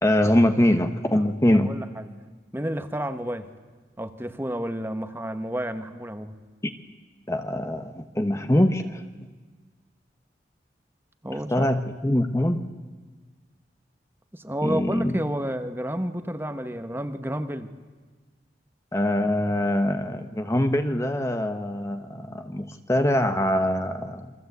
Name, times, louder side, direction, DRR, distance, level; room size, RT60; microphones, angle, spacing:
voice 1, 0.0-1.7 6.6-6.7 7.3-9.0 11.3-12.6 14.6-15.2 18.9-24.3, left 1 dB, 15° left, 7 dB, 1.1 m, -23 dB
voice 2, 1.6-2.1 2.5-3.5 4.0-6.3 11.2-11.7 14.3-17.7, equal, 10° right, 8 dB, 1.2 m, -30 dB
28.5 x 24.0 x 8.2 m, 1.4 s
head